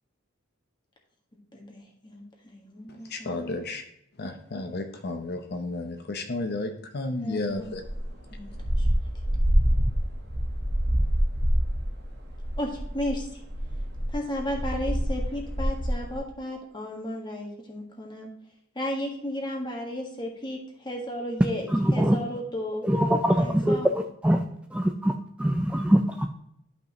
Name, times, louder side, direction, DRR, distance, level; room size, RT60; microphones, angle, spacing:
voice 1, 1.5-3.5 7.2-7.7 8.3-8.9 12.6-13.4 14.1-18.3 18.7-22.9 23.4-23.9, left 1 dB, 20° left, 1.6 m, -34 dB
voice 2, 2.9-3.8 4.2-7.8, left 2 dB, 50° left, 0.7 m, -32 dB
sound 1, 7.7-16.2, equal, 50° right, 1.3 m, -26 dB
voice 3, 21.7-22.2 22.8-24.4 24.7-25.1 25.4-26.3, equal, 5° right, 0.3 m, -23 dB
11.5 x 5.4 x 3.1 m
head